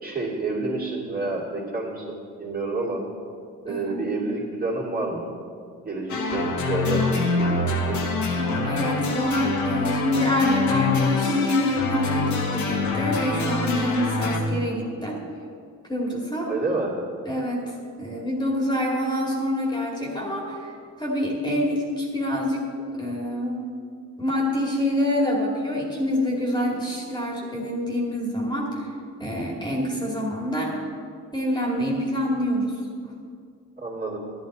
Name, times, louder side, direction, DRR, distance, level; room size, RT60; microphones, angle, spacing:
voice 1, 0.0-3.0 3.6-5.3 5.9-8.0 16.5-17.0 33.8-34.2, right 3 dB, 30° right, -5 dB, 2.7 m, -29 dB
voice 2, 3.7-4.1 8.4-15.2 15.9-16.5 17.3-20.7 21.0-22.7 22.9-23.6 24.2-28.8 29.2-30.8 31.3-32.7, left 1 dB, 15° left, -3 dB, 2.2 m, -26 dB
sound 1, 6.1-14.4, left 3 dB, 70° left, 1.5 m, -25 dB
12.0 x 10.0 x 4.2 m, 2.3 s
cardioid pair, 90°, 30 cm